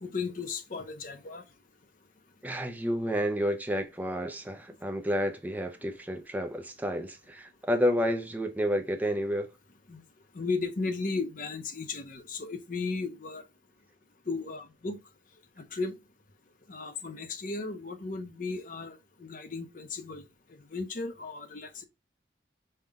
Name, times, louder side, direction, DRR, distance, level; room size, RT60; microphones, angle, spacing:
voice 1, 0.0-1.4 9.9-10.0 10.3-13.5 14.3-15.0 15.6-16.0 16.7-21.8, left 4 dB, 45° left, 0.6 m, -35 dB
voice 2, 2.4-9.5, equal, 10° right, 0.4 m, -30 dB
5.5 x 2.2 x 3.5 m
head